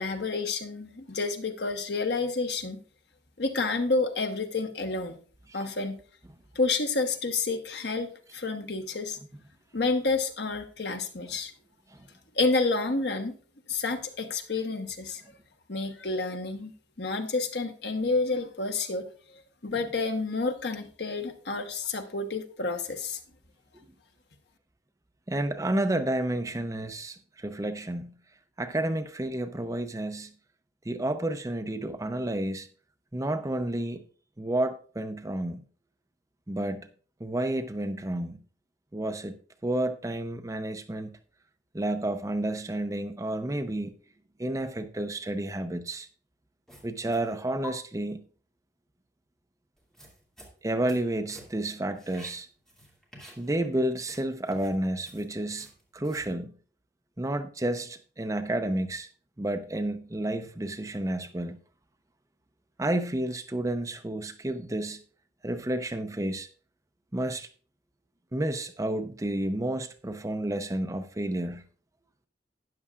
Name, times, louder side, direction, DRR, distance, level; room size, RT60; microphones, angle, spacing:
voice 1, 0.0-2.8 3.4-5.2 5.5-6.0 6.5-9.2 9.7-11.5 12.3-13.4 13.7-15.2 15.7-16.7 17.0-19.1 19.6-23.2, left 3 dB, 60° left, 1.1 m, -29 dB
voice 2, 25.3-28.1 28.6-30.3 30.8-32.7 33.1-34.0 34.4-35.6 36.5-36.9 37.2-38.4 38.9-39.4 39.6-41.1 41.7-43.9 44.4-46.1 46.8-48.2 50.6-52.5 53.4-55.7 55.9-56.5 57.2-59.1 59.4-61.6 62.8-65.0 65.4-66.5 67.1-67.5 68.3-71.6, right 1 dB, 20° right, 0.6 m, -30 dB
sound 1, 46.7-47.3 47.6-47.7 49.8-51.1 51.3-51.7 51.9-53.7 53.9-56.3, left 2 dB, 5° left, 2.4 m, -49 dB
12.5 x 9.7 x 2.4 m
head